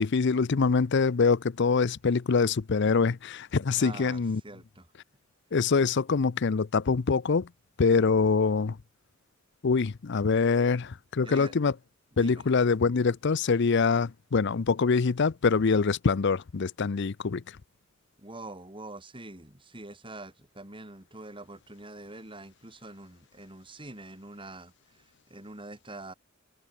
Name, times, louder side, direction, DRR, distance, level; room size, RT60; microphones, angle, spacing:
voice 1, 0.0-4.4 5.5-7.5 7.8-8.8 9.6-11.7 12.2-17.4, left 4 dB, 60° left, 0.6 m, -24 dB
voice 2, 3.8-4.9 11.2-11.6 12.2-12.4 18.2-26.1, right 2 dB, 25° right, 4.3 m, -45 dB
head